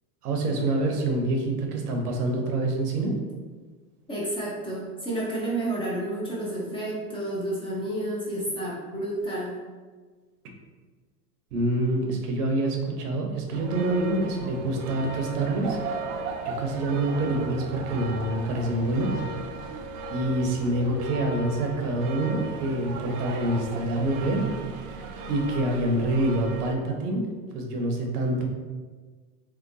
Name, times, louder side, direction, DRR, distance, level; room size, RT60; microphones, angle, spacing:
voice 1, 0.2-3.1 11.5-15.8 16.4-19.1 20.1-24.5 25.2-27.2 27.5-28.5, right 2 dB, 80° right, 2 dB, 0.9 m, -26 dB
voice 2, 4.1-9.6, right 1 dB, 15° left, -6 dB, 0.4 m, -30 dB
sound 1, 13.5-26.8, right 3 dB, 60° right, 0.5 m, -36 dB
3.3 x 2.9 x 2.6 m, 1.4 s
hypercardioid pair, 115°, 46 cm